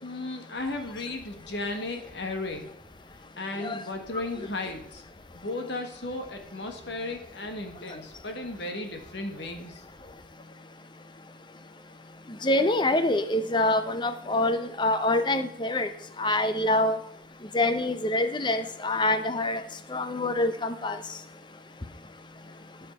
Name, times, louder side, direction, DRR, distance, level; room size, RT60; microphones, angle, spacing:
voice 1, 0.0-2.7 3.1-5.0 5.3-9.8, left 2 dB, 60° left, 5 dB, 1.5 m, -35 dB
voice 2, 12.4-15.9 16.2-17.0 17.5-19.6 19.9-21.0, left 1 dB, 25° left, 10 dB, 0.7 m, -25 dB
11.5 x 6.5 x 5.5 m, 0.70 s
head